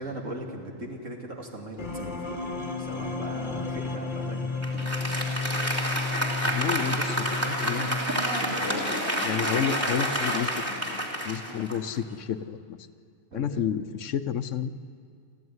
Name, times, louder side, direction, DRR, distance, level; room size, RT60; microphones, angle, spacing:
voice 1, 0.0-2.1 2.8-4.7 13.3-13.6, right 1 dB, 80° right, 1 dB, 3.0 m, -38 dB
sound 1, 1.8-8.8, left 4 dB, 40° left, 1.4 m, -33 dB
Applause, 4.6-12.2, equal, 10° right, 3.0 m, -29 dB
voice 2, 6.4-8.0 8.5-12.9 13.3-14.7, left 8 dB, 75° left, 12 dB, 1.2 m, -31 dB
26.5 x 14.5 x 9.6 m, 2.2 s
omnidirectional pair, 1.3 m